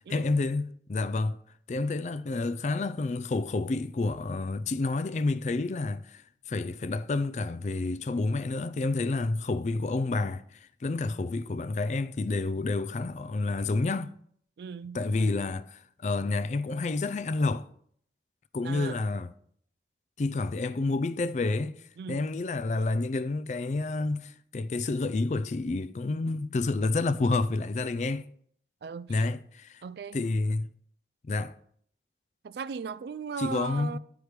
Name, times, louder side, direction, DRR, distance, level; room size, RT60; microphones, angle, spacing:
voice 1, 0.1-1.4 1.7-14.1 14.9-17.7 18.5-19.3 20.2-21.8 22.1-28.2 29.1-29.8 30.1-30.7 31.3-31.5 33.4-34.0, left 3 dB, 40° left, 0.4 m, -29 dB
voice 2, 14.6-15.3 18.6-19.0 22.0-22.2 28.8-29.3 29.8-30.2 32.4-34.0, right 6 dB, 65° right, 0.3 m, -38 dB
9.6 x 4.8 x 5.0 m
head